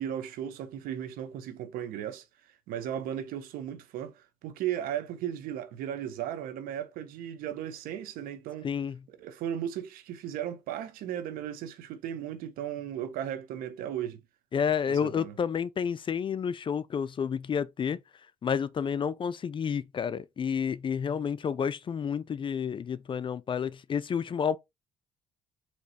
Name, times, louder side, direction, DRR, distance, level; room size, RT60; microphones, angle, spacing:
voice 1, 0.0-2.2 2.7-8.7 9.2-14.2 14.9-15.3, right 10 dB, 80° right, 0.7 m, -36 dB
voice 2, 8.6-9.0 14.5-18.0 18.4-24.6, left 7 dB, 35° left, 0.4 m, -30 dB
4.2 x 3.0 x 2.9 m
supercardioid pair, 75°, 15 cm